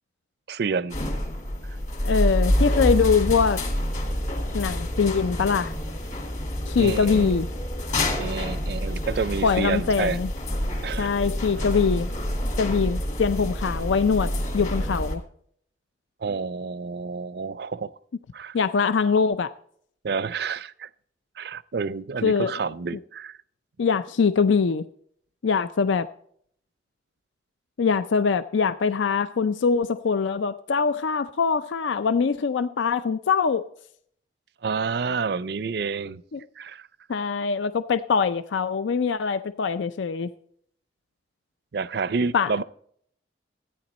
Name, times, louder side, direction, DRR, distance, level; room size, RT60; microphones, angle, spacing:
voice 1, 0.5-1.0 6.8-7.4 8.2-10.2 10.8-11.1 16.2-17.9 18.3-18.5 20.0-20.9 21.4-23.4 34.6-36.2 36.6-36.9 41.7-42.6, right 5 dB, 60° right, 0.4 m, -29 dB
sound 1, 0.9-15.2, left 1 dB, 40° left, 2.1 m, -27 dB
voice 2, 2.0-3.6 4.5-5.7 6.7-7.5 9.4-10.3 11.0-12.1 12.6-15.2 18.5-19.5 22.2-22.5 23.8-24.9 25.4-26.1 27.8-33.6 36.3-36.4 37.1-40.3 42.3-42.6, left 5 dB, 80° left, 0.4 m, -23 dB
13.5 x 9.5 x 4.2 m
head